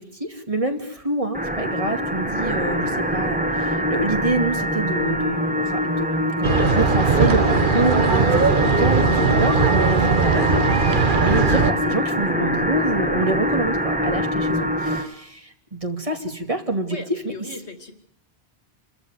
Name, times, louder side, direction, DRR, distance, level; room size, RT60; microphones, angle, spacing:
voice 1, 0.0-17.3, right 2 dB, 30° right, 5 dB, 2.6 m, -27 dB
sound 1, 1.3-15.1, equal, 10° right, 1.7 m, -24 dB
sound 2, 6.4-11.7, right 4 dB, 50° right, 1.4 m, -19 dB
voice 2, 16.9-17.9, left 2 dB, 80° left, 9 dB, 3.0 m, -38 dB
27.5 x 14.0 x 9.7 m, 0.71 s
omnidirectional pair, 1.1 m